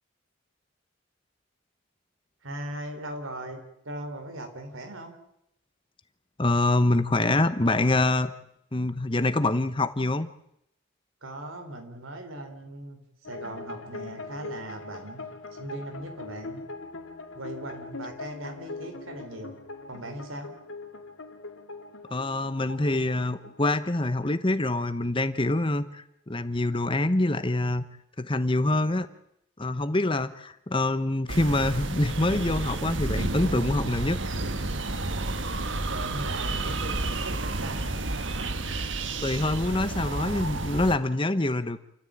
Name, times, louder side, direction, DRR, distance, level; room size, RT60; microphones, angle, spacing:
voice 1, 2.4-3.6 3.8-5.1 11.2-13.0 13.3-15.2 15.5-16.6 17.3-19.6 19.9-20.5 35.7-37.8, right 1 dB, 85° right, 6 dB, 4.1 m, -39 dB
voice 2, 6.4-8.3 8.7-10.3 22.1-27.8 28.2-29.1 29.6-34.2 39.2-41.8, left 2 dB, 25° left, 12 dB, 1.0 m, -25 dB
sound 1, 13.2-25.0, left 3 dB, 80° left, 2.4 m, -42 dB
sound 2, 31.3-41.0, right 2 dB, 65° right, 1.5 m, -31 dB
29.0 x 14.5 x 8.9 m, 0.78 s
head